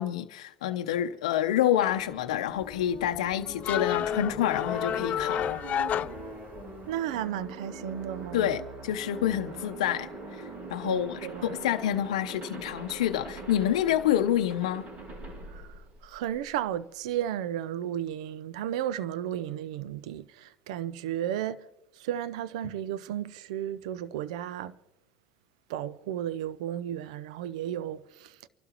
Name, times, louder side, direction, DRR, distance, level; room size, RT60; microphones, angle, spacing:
voice 1, 0.0-5.5 8.3-14.8, left 11 dB, 90° left, 0.6 m, -28 dB
sound 1, 1.8-16.5, right 2 dB, 50° right, 5.6 m, -42 dB
sound 2, 2.6-6.9, left 10 dB, 45° left, 0.4 m, -31 dB
voice 2, 6.9-8.5 10.8-11.6 15.5-21.6 21.9-24.7 25.7-28.4, right 11 dB, 80° right, 0.5 m, -34 dB
29.5 x 12.0 x 3.0 m
supercardioid pair, 90°, 3 cm